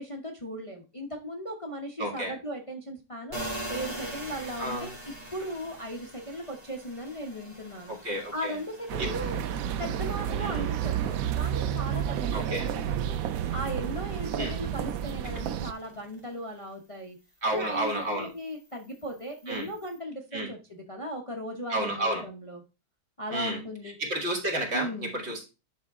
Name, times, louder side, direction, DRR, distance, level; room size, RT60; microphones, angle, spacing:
voice 1, 0.0-3.4 3.7-7.9 8.3-9.4 9.8-13.2 13.5-17.2 17.5-22.6 23.2-24.0 24.7-25.1, equal, 25° left, 1 dB, 1.0 m, -37 dB
voice 2, 2.0-2.3 4.6-4.9 7.9-8.6 9.0-9.1 10.4-10.6 12.3-12.7 14.4-14.5 17.4-18.3 19.5-19.7 20.3-20.5 21.7-22.2 23.3-23.6 24.0-25.4, right 1 dB, 45° right, 1 dB, 2.1 m, -31 dB
sound 1, 3.3-16.7 17.1-20.0, right 1 dB, 25° right, 1.8 m, -44 dB
sound 2, 8.9-15.7, right 10 dB, 75° right, 1.0 m, -30 dB
10.5 x 3.8 x 3.5 m, 0.28 s
omnidirectional pair, 1.6 m